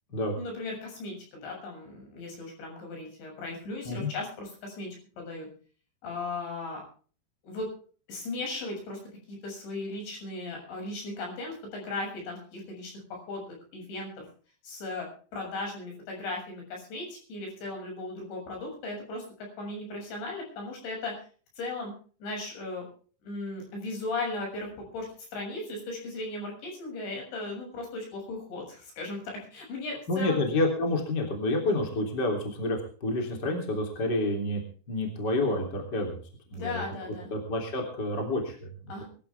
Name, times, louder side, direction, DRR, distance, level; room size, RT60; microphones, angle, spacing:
voice 1, 0.4-5.5 6.0-6.8 7.4-7.7 8.1-9.0 9.3-13.4 13.7-14.3 14.6-21.2 21.6-21.9 22.2-22.9 23.2-30.5 36.5-37.3 38.9-39.0, left 2 dB, 70° left, 0 dB, 9.3 m, -37 dB
voice 2, 30.1-34.6 34.9-36.2 36.5-36.8 37.3-38.7, left 2 dB, 25° left, 1 dB, 3.3 m, -29 dB
23.0 x 13.5 x 3.5 m, 0.41 s
omnidirectional pair, 5.3 m